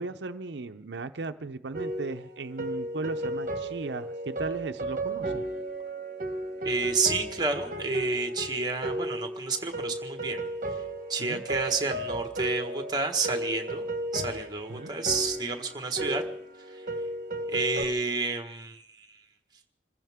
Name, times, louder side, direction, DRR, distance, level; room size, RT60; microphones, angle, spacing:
voice 1, 0.0-5.4 11.2-11.4 14.7-14.9, right 3 dB, 80° right, 9 dB, 0.7 m, -37 dB
sound 1, 1.7-17.8, right 1 dB, 50° right, 1.3 m, -34 dB
voice 2, 6.6-10.4 11.1-13.8 14.1-16.2 16.7-16.8 17.5-19.2, right 4 dB, 25° right, 5 dB, 1.5 m, -30 dB
26.5 x 15.0 x 3.6 m, 0.73 s
head